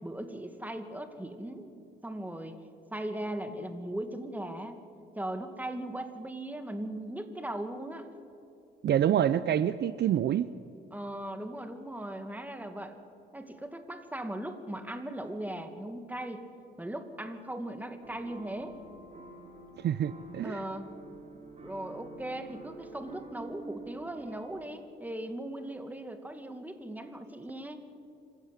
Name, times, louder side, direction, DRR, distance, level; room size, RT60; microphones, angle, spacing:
voice 1, 0.0-1.7 2.0-2.6 2.9-4.8 5.2-8.1 10.9-13.0 13.3-16.5 16.8-18.8 20.4-20.9 21.6-27.8, right 1 dB, 10° right, 7 dB, 2.2 m, -38 dB
voice 2, 8.8-10.5 19.8-20.6, right 10 dB, 60° right, 15 dB, 0.6 m, -27 dB
sound 1, 18.0-24.7, right 2 dB, 35° right, 3.5 m, -48 dB
26.0 x 15.0 x 8.3 m, 2.5 s
cardioid pair, 90°, 20 cm